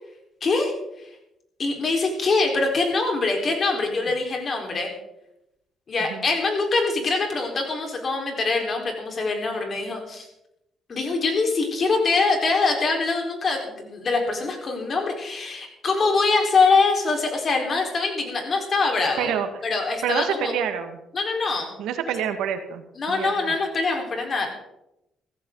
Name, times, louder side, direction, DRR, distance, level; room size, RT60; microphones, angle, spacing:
voice 1, 0.4-1.1 1.6-4.9 5.9-10.3 10.9-19.4 19.6-20.6 21.1-21.7 23.0-24.5, left 3 dB, 45° left, 2 dB, 4.2 m, -24 dB
voice 2, 19.2-19.5 20.0-21.0 21.8-22.8 23.1-23.5, right 8 dB, 90° right, 7 dB, 1.7 m, -27 dB
15.5 x 15.0 x 3.9 m, 0.86 s
cardioid pair, 90°, 0 cm